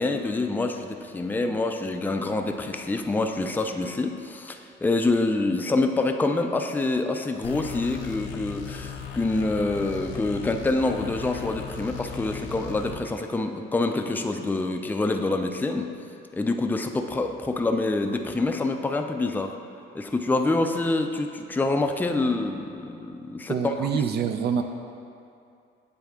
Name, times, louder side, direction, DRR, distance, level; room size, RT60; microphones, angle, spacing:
voice 1, 0.0-15.9 16.3-19.5 19.9-23.9, left 2 dB, 10° left, 5 dB, 0.3 m, -26 dB
sound 1, 7.4-13.0, left 7 dB, 70° left, 0.5 m, -37 dB
voice 2, 23.5-24.6, right 7 dB, 60° right, 6 dB, 0.4 m, -26 dB
8.1 x 3.4 x 3.5 m, 2.5 s
cardioid pair, 90°, 20 cm